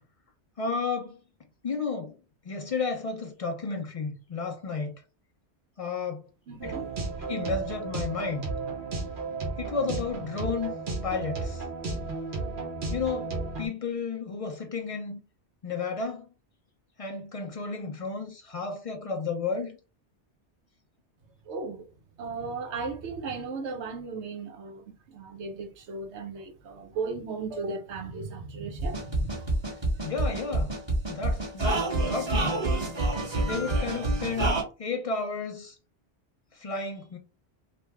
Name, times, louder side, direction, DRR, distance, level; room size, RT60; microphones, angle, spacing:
voice 1, 0.6-1.2 1.6-2.2 2.5-4.9 5.8-6.2 6.6-6.7 7.3-8.5 9.6-10.7 11.0-11.6 12.9-15.2 15.6-16.3 17.0-19.8 30.0-30.8 31.1-32.6 33.4-35.7 36.6-37.2, left 4 dB, 65° left, 0.3 m, -32 dB
voice 2, 6.5-6.8 21.5-21.9 22.2-29.3, right 4 dB, 75° right, 1.0 m, -36 dB
sound 1, 6.6-13.7, right 3 dB, 50° right, 1.0 m, -33 dB
sound 2, 28.8-34.6, right 2 dB, 25° right, 1.1 m, -27 dB
3.2 x 2.1 x 3.4 m
omnidirectional pair, 1.2 m